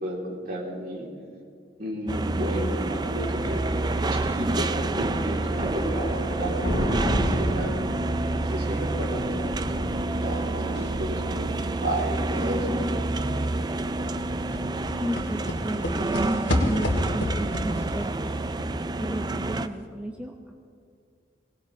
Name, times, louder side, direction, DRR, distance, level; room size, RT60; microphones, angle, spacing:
voice 1, 0.0-1.1 1.8-3.6 4.1-7.7 8.4-12.7, right 1 dB, 50° right, -3 dB, 3.2 m, -32 dB
sound 1, 2.1-19.7, right 2 dB, 20° right, 0.4 m, -28 dB
sound 2, 2.6-18.4, equal, 60° left, 5.1 m, -35 dB
sound 3, 10.7-11.1 11.4-11.5 11.8-19.6 19.8-19.9, left 1 dB, 75° left, 2.2 m, -31 dB
voice 2, 15.0-18.3 19.0-20.5, right 1 dB, 5° right, 0 dB, 0.8 m, -35 dB
22.0 x 19.0 x 3.2 m, 2.3 s
head